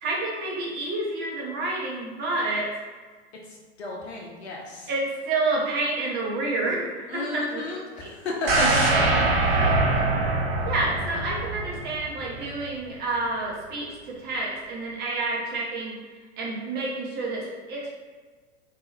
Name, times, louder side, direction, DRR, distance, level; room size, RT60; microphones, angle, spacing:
voice 1, 0.0-2.7 4.9-7.6 8.0-8.1 8.6-8.7 10.6-16.0 16.4-18.0, right 2 dB, 30° right, -4 dB, 1.1 m, -29 dB
voice 2, 3.5-4.9 7.1-10.0, left 2 dB, 70° left, -2 dB, 0.7 m, -33 dB
sound 1, 8.5-12.4 12.8-12.9, right 2 dB, 60° right, 0.9 m, -23 dB
3.7 x 2.8 x 2.7 m, 1.4 s
figure-of-eight pair, 95°, 33 cm